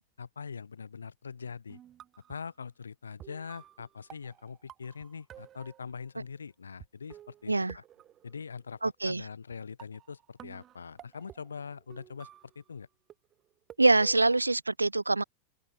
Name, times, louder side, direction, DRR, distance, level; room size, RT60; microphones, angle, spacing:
voice 1, 0.2-1.8 2.3-7.8 8.2-12.3 12.6-12.9, left 6 dB, 75° left, 3.6 m, -43 dB
sound 1, 1.7-2.5 3.2-6.1 6.8-6.9 7.1-8.8 9.5-9.6 9.8-12.7 13.1-14.4, right 11 dB, 30° right, 6.2 m, -53 dB
voice 2, 7.5-7.8 8.8-9.2 13.8-15.2, right 2 dB, 80° right, 0.3 m, -24 dB
figure-of-eight pair, 90°, 0 cm